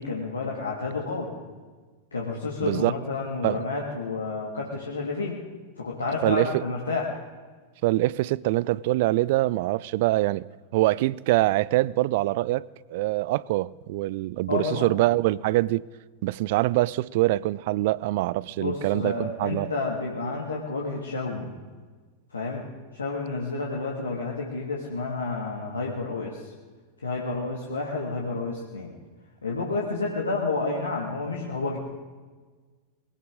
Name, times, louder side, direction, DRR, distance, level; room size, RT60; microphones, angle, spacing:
voice 1, 0.0-1.3 2.1-5.4 5.8-7.2 14.5-14.9 18.6-21.5 22.3-22.7 22.9-26.5 27.0-28.9 29.4-31.8, left 3 dB, 75° left, 2.0 m, -30 dB
voice 2, 6.2-6.6 7.8-10.5 10.7-15.8 16.2-19.7, right 18 dB, 50° right, 0.4 m, -24 dB
21.5 x 16.5 x 3.7 m
figure-of-eight pair, 90°, 0 cm